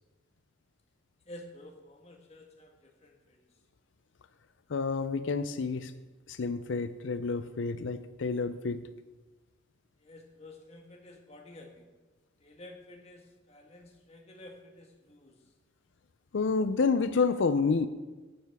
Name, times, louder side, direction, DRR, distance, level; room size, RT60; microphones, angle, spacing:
voice 1, 1.3-3.4 10.0-11.9 12.4-15.3, left 1 dB, 35° left, 1 dB, 1.6 m, -51 dB
voice 2, 4.7-5.9 6.3-8.8 16.3-17.9, left 4 dB, 75° left, 11 dB, 0.5 m, -29 dB
15.0 x 9.7 x 3.6 m, 1.2 s
head